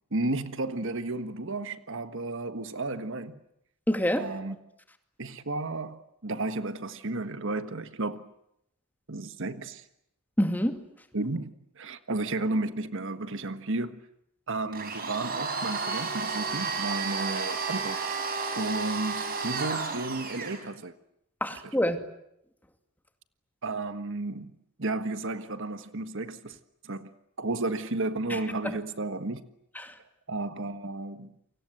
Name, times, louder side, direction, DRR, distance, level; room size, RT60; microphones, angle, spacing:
voice 1, 0.1-3.4 4.2-4.5 5.2-8.3 9.1-9.8 11.1-14.0 14.5-18.0 18.5-20.9 23.6-24.5 24.8-26.6 26.8-27.1 27.4-29.4 30.3-31.4, right 2 dB, 60° right, 1.5 m, -33 dB
voice 2, 3.9-4.3 10.4-10.8 21.4-22.0 28.3-28.8 29.8-30.0, equal, 10° left, 2.4 m, -27 dB
Domestic sounds home sounds, 14.7-20.6, right 4 dB, 40° right, 5.9 m, -32 dB
29.5 x 25.0 x 7.9 m
head